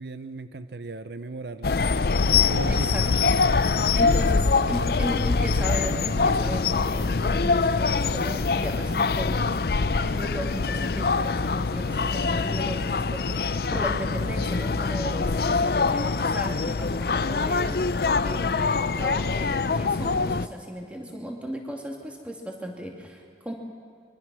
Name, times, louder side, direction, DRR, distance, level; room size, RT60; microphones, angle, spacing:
voice 1, 0.0-1.8 2.4-2.9 4.0-4.1 4.6-4.8, right 3 dB, 70° right, 11 dB, 0.6 m, -35 dB
sound 1, 1.6-20.5, left 4 dB, 60° left, 0.5 m, -24 dB
voice 2, 2.7-3.1 4.0-17.8 18.2-23.6, equal, 5° right, 0 dB, 2.5 m, -36 dB
25.0 x 23.5 x 6.2 m, 2.1 s
head